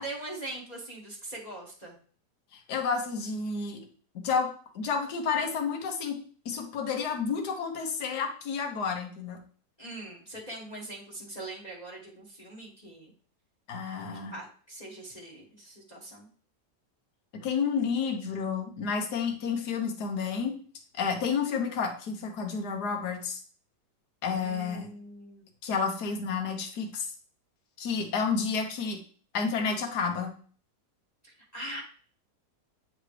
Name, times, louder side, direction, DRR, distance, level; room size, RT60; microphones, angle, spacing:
voice 1, 0.0-1.9 9.8-13.1 14.3-16.3 24.3-25.5 31.2-31.8, right 2 dB, 25° left, -2 dB, 1.2 m, -42 dB
voice 2, 2.7-3.8 4.2-4.5 4.7-9.4 13.7-14.3 17.4-20.6 21.0-23.4 24.2-24.9 25.6-27.1 27.8-29.0 29.3-30.3, left 5 dB, 65° left, 3 dB, 1.6 m, -30 dB
8.9 x 4.0 x 3.2 m, 0.44 s
omnidirectional pair, 1.9 m